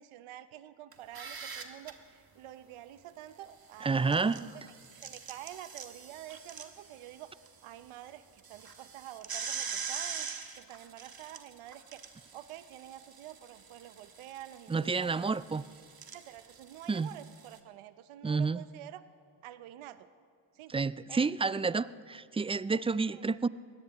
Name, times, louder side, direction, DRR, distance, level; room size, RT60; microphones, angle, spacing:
voice 1, 0.0-4.5 5.0-7.3 7.6-10.3 10.6-12.0 12.3-15.2 16.1-19.0 19.4-20.1 20.5-20.7 21.1-21.3 22.7-22.8 23.1-23.3, right 12 dB, 80° right, 13 dB, 0.8 m, -48 dB
sound 1, 0.9-1.9 3.8-7.5 7.8-7.9 8.4-17.6, right 6 dB, 45° right, 1.5 m, -43 dB
voice 2, 3.8-4.4 14.7-15.6 16.9-17.1 18.2-18.6 20.7-23.5, right 4 dB, 15° right, 18 dB, 0.3 m, -30 dB
23.0 x 17.0 x 3.0 m, 2.4 s
supercardioid pair, 40°, 49 cm